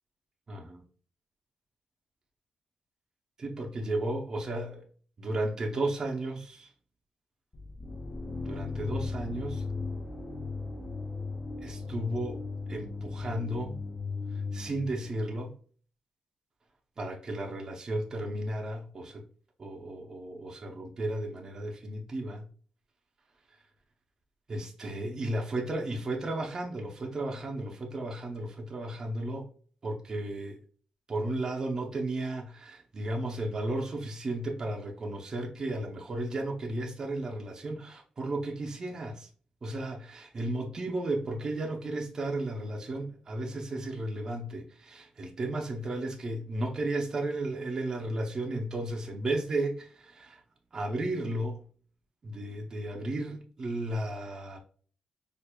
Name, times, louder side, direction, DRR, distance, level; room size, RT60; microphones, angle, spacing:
voice 1, 0.5-0.8 3.4-4.8 5.2-6.7 8.4-9.6 11.6-12.4 12.7-13.8 14.5-15.5 17.0-19.2 19.6-22.4 24.5-29.5 29.8-30.6 31.1-39.3 39.6-50.4 50.7-51.6 52.2-54.6, right 1 dB, 30° right, 0.6 m, -34 dB
sound 1, 7.5-15.4, left 3 dB, 15° left, 0.7 m, -37 dB
4.4 x 2.5 x 2.2 m
wide cardioid pair, 155°, 2 cm